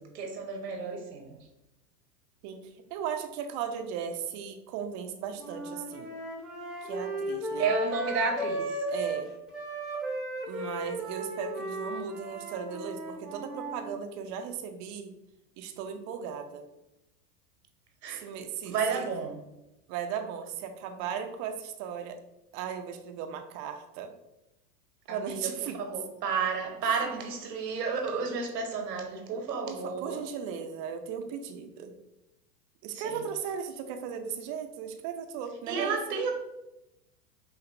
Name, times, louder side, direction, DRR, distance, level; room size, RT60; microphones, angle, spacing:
voice 1, 0.0-1.4 7.6-8.8 18.0-18.3 18.6-19.4 25.1-30.2 32.9-33.2 35.7-36.3, right 5 dB, 80° right, 1.1 m, -32 dB
voice 2, 2.4-6.1 6.8-7.7 8.9-9.3 10.5-15.1 15.6-16.6 18.1-19.0 19.9-22.2 22.5-24.1 25.1-25.8 29.3-31.9 32.8-36.0, right 7 dB, 35° right, 0.5 m, -37 dB
sound 1, 5.4-9.2 9.5-13.9, right 1 dB, ahead, 0.8 m, -35 dB
5.8 x 2.5 x 2.5 m
hypercardioid pair, 105°, 47 cm